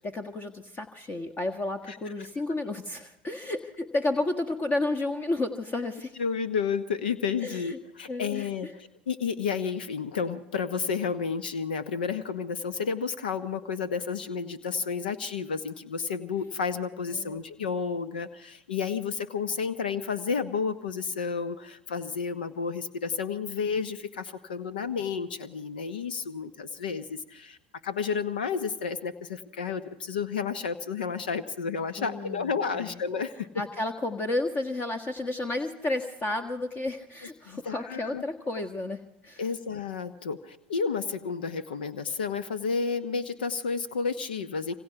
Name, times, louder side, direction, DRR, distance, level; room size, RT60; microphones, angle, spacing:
voice 1, 0.0-6.1 7.4-7.8 8.1-8.5 17.1-17.4 32.0-32.9 33.6-39.4, left 2 dB, 30° left, 8 dB, 1.5 m, -32 dB
voice 2, 1.9-2.3 6.2-27.6 27.8-33.5 37.5-38.2 39.4-44.7, left 5 dB, 75° left, 14 dB, 1.0 m, -31 dB
26.5 x 25.5 x 5.9 m, 0.91 s
figure-of-eight pair, 75°, 5 cm